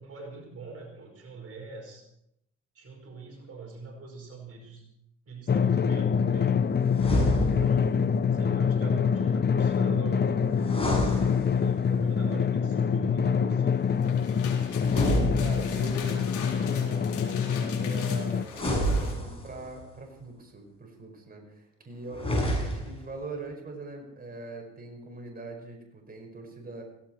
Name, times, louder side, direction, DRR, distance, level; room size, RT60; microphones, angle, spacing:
voice 1, 0.0-2.0 2.8-4.8 5.3-6.6 7.4-11.0 11.5-13.9, right 4 dB, 50° right, 1 dB, 5.1 m, -43 dB
Drum, 5.5-18.4, left 6 dB, 35° left, 0.8 m, -25 dB
sound 1, 6.9-7.9 10.6-11.9 14.8-16.0 18.5-19.7 22.1-23.1, equal, 20° left, 7.8 m, -28 dB
sound 2, 13.8-19.2, left 7 dB, 80° left, 3.9 m, -42 dB
voice 2, 15.4-26.8, right 2 dB, 30° right, 1 dB, 5.4 m, -42 dB
17.0 x 16.5 x 4.6 m, 0.80 s
cardioid pair, 90°, 30 cm